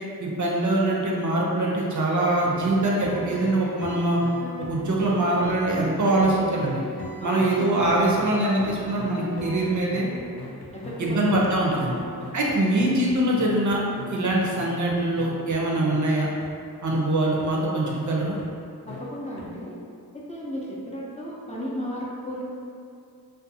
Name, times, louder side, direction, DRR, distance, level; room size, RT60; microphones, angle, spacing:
voice 1, 0.2-4.2 4.6-6.8 7.2-10.1 11.0-12.0 12.3-13.8 14.1-16.3 16.8-18.4, right 1 dB, 50° right, -3 dB, 0.5 m, -23 dB
sound 1, 2.5-15.6 15.9-16.0 16.4-16.5 16.9-17.0 17.4-17.5 17.9-18.0 18.4-18.5 18.9-19.0 19.4-19.5, left 2 dB, 90° left, 0.5 m, -38 dB
voice 2, 7.2-7.5 10.7-11.2 11.9-12.1 18.9-19.8 20.3-22.4, equal, 20° left, -7 dB, 0.5 m, -34 dB
2.5 x 2.2 x 2.6 m, 2.3 s
cardioid pair, 50°, 38 cm